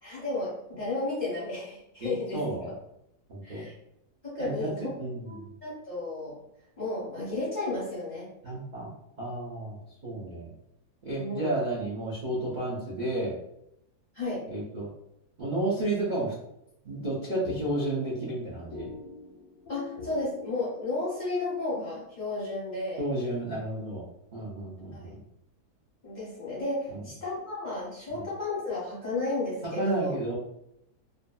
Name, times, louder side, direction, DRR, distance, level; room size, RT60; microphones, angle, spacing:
voice 1, 0.0-2.7 3.4-3.7 4.2-4.9 5.2-6.4 6.8-8.3 11.1-11.5 14.1-14.4 19.7-23.0 24.9-25.1 26.0-30.1, left 2 dB, 40° left, -8 dB, 0.7 m, -33 dB
voice 2, 2.0-2.7 3.3-3.7 4.4-5.5 8.4-10.5 11.0-13.4 14.5-14.9 15.4-16.3 16.8-18.9 23.0-25.2 26.9-27.0 28.1-28.2 29.6-30.4, right 1 dB, 75° right, -8 dB, 0.4 m, -32 dB
sound 1, 16.9-21.2, left 5 dB, 70° left, 0.9 m, -44 dB
2.5 x 2.4 x 2.2 m, 0.79 s
omnidirectional pair, 1.7 m